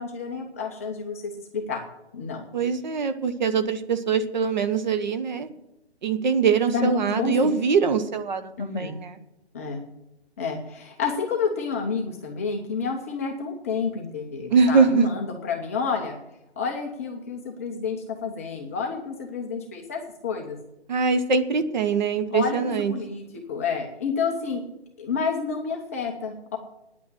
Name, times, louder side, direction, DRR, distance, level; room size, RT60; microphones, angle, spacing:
voice 1, 0.0-1.8 2.1-2.5 6.7-7.5 8.6-8.9 9.5-9.8 10.4-16.1 16.6-20.6 22.3-24.6 25.0-26.6, left 5 dB, 15° left, 1 dB, 0.6 m, -29 dB
voice 2, 2.5-5.5 6.0-9.2 14.5-15.1 20.9-22.9, right 5 dB, 45° right, 10 dB, 1.1 m, -23 dB
9.7 x 8.3 x 9.5 m, 0.87 s
hypercardioid pair, 165°, 33 cm